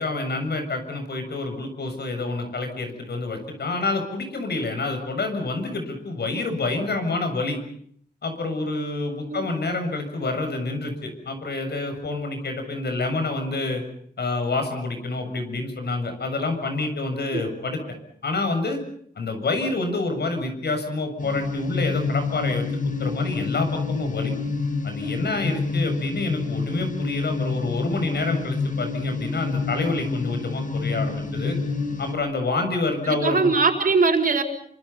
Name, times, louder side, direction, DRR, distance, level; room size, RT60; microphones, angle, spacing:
voice 1, 0.0-7.6 8.2-13.8 14.2-17.8 18.2-18.8 19.2-24.3 24.8-31.6 32.0-33.5, left 3 dB, 75° left, 6 dB, 7.1 m, -28 dB
sound 1, 21.2-32.1, left 4 dB, 50° left, 6.6 m, -28 dB
voice 2, 33.0-34.4, right 4 dB, 55° right, 4 dB, 4.9 m, -21 dB
29.0 x 25.5 x 5.7 m, 0.63 s
wide cardioid pair, 115°, 17 cm